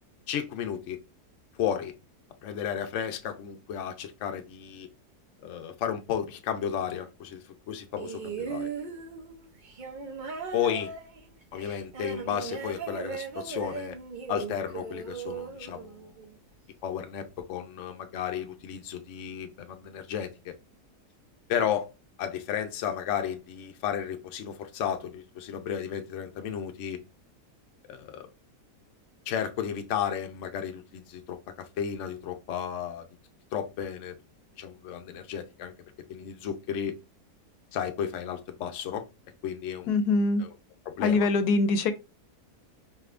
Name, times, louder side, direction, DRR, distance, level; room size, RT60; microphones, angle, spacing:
voice 1, 0.3-1.0 1.6-1.9 2.4-4.9 5.4-8.7 10.5-10.9 11.5-14.0 14.3-16.1 16.8-20.5 21.5-21.9 22.2-27.0 27.9-28.3 29.3-33.0 33.5-34.2 34.6-35.7 36.1-37.0 37.7-39.1 39.4-40.0 40.4-40.5 40.9-41.3, left 9 dB, 60° left, 0.8 m, -33 dB
sound 1, 8.0-16.4 17.4-17.5, right 5 dB, 55° right, 0.5 m, -38 dB
voice 2, 39.9-40.4 41.0-41.9, left 3 dB, 80° left, 1.1 m, -23 dB
4.8 x 3.4 x 2.5 m
omnidirectional pair, 1.7 m